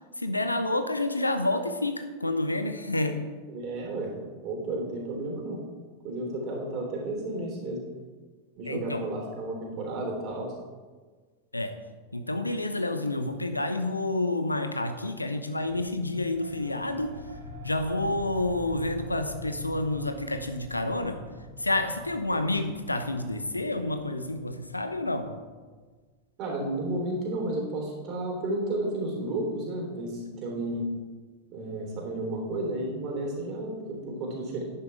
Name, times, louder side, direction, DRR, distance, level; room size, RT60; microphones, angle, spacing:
voice 1, 0.2-3.2 8.6-9.0 11.5-11.7 12.1-17.1 17.6-21.2 21.6-25.3, left 2 dB, 85° left, 8 dB, 0.9 m, -29 dB
voice 2, 3.5-4.1 4.4-5.6 6.0-7.8 8.6-10.5 26.4-30.9 31.5-34.6, right 2 dB, 40° right, -1 dB, 3.6 m, -32 dB
sound 1, 15.6-25.8, equal, 55° right, 2.3 m, -45 dB
11.5 x 9.8 x 3.5 m, 1.4 s
figure-of-eight pair, 90°, 0 cm